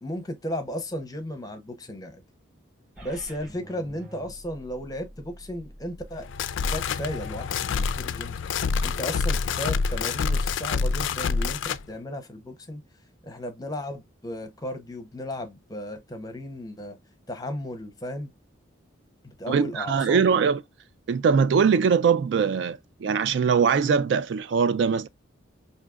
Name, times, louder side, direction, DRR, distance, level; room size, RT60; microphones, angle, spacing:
voice 1, 0.0-2.2 3.0-6.3 6.6-8.4 8.8-12.8 13.2-17.0 17.3-18.3 19.2-20.2, left 1 dB, 20° left, 0.7 m, -35 dB
sound 1, 3.0-9.0, equal, 5° right, 2.9 m, -47 dB
sound 2, 6.2-11.8, left 5 dB, 70° left, 0.3 m, -27 dB
voice 2, 19.5-20.6 21.1-25.1, right 6 dB, 60° right, 0.3 m, -22 dB
5.0 x 2.7 x 2.3 m
head